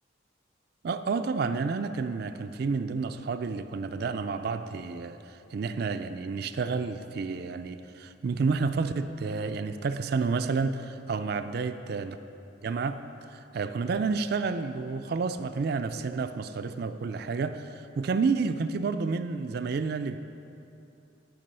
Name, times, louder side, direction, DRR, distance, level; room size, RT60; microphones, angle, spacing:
voice 1, 0.8-12.2 12.6-13.0 13.3-20.2, right 4 dB, 55° right, 9 dB, 0.4 m, -30 dB
10.5 x 6.7 x 5.5 m, 2.7 s
head